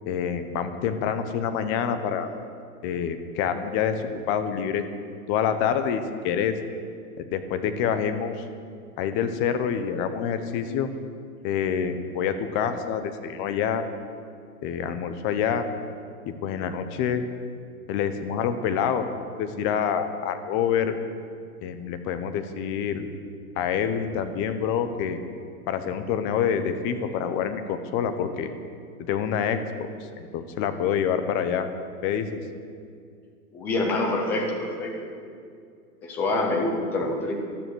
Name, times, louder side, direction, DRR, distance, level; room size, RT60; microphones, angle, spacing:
voice 1, 0.1-2.3 2.8-4.8 5.3-6.5 7.2-8.4 9.0-10.9 11.4-13.8 14.6-15.7 16.4-17.2 17.9-19.1 19.4-20.9 21.6-23.1 23.6-25.2 25.7-28.5 29.1-29.6 30.2-31.7 32.0-32.4, left 8 dB, 25° left, 9 dB, 1.0 m, -26 dB
voice 2, 33.5-35.1 36.0-37.3, left 2 dB, 5° left, 1 dB, 0.4 m, -26 dB
14.5 x 12.0 x 6.4 m, 2.3 s
hypercardioid pair, 145°, 46 cm